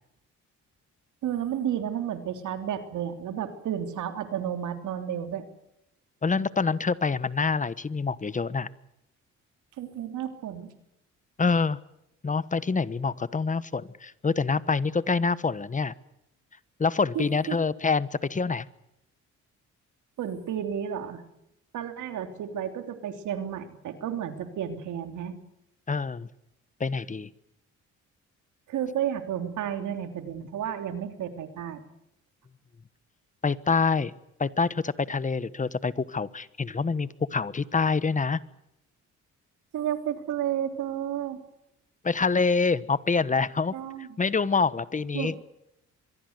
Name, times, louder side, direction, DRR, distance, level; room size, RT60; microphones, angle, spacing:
voice 1, 1.2-5.4 9.8-10.7 17.1-17.6 20.2-21.2 21.7-25.4 28.7-31.8 39.7-41.4 43.7-44.1 45.1-45.3, right 9 dB, 80° right, 7 dB, 3.2 m, -32 dB
voice 2, 6.2-8.7 11.4-11.8 12.2-15.9 16.8-18.7 25.9-26.3 26.8-27.3 33.4-34.1 34.4-38.4 42.0-43.7 44.2-45.3, left 4 dB, 25° left, 17 dB, 1.2 m, -26 dB
24.5 x 22.5 x 8.1 m, 0.83 s
cardioid pair, 90°, 30 cm